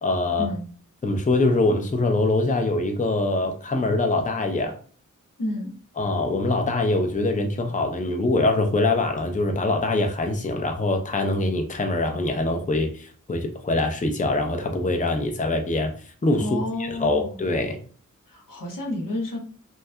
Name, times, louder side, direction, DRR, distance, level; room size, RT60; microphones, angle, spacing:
voice 1, 0.0-0.5 1.0-4.8 6.0-15.9 16.2-17.8, left 2 dB, 25° left, 4 dB, 0.5 m, -23 dB
voice 2, 5.4-5.7 16.4-17.4 18.3-19.4, left 1 dB, 90° left, -1 dB, 0.9 m, -30 dB
2.7 x 2.2 x 2.2 m, 0.42 s
wide cardioid pair, 45°, 32 cm